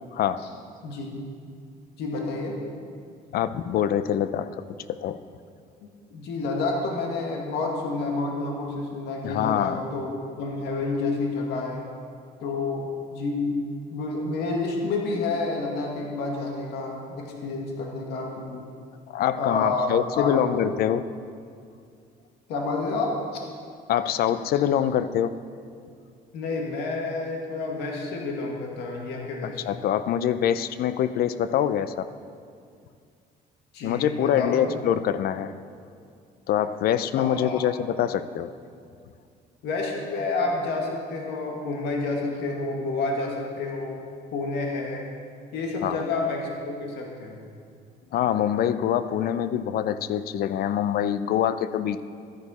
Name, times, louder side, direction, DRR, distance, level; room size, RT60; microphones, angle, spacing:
voice 1, 0.1-0.4 3.3-4.5 5.0-5.2 9.2-9.8 19.1-21.0 23.9-25.3 29.4-32.1 33.8-35.5 36.5-38.5 45.8-46.0 48.1-52.0, left 10 dB, 65° left, 13 dB, 0.5 m, -25 dB
voice 2, 0.8-1.2 2.0-2.5 5.8-11.8 12.4-13.6 13.9-18.7 19.3-20.7 22.5-23.1 26.3-29.7 33.7-34.8 37.2-37.6 39.6-44.0 44.3-45.1 45.5-47.4, left 3 dB, 85° left, 0 dB, 1.9 m, -29 dB
13.0 x 10.5 x 4.2 m, 2.3 s
cardioid pair, 110°, 17 cm